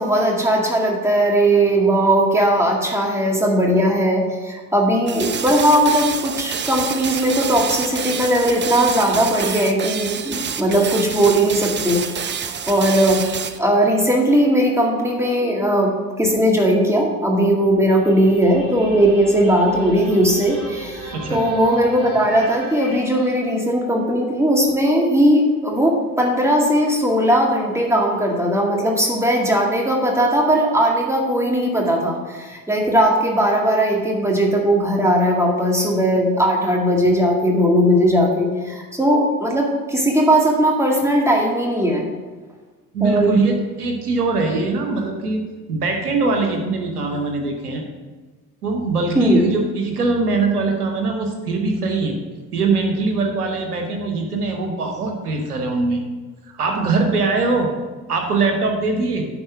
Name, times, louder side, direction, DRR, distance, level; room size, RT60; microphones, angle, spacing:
voice 1, 0.0-13.3 13.6-15.9 16.2-42.1 43.0-43.4 49.2-49.5, right 1 dB, 5° right, -1 dB, 2.0 m, -18 dB
sound 1, 5.1-13.6, right 7 dB, 25° right, 0.5 m, -28 dB
sound 2, 17.9-23.4, right 1 dB, 45° right, 2.9 m, -36 dB
voice 2, 21.1-21.4 42.9-47.8 48.6-52.2 52.5-56.0 56.5-57.7 58.1-59.3, right 3 dB, 85° right, 4 dB, 1.0 m, -21 dB
9.8 x 4.0 x 5.9 m, 1.3 s
figure-of-eight pair, 45°, 45 cm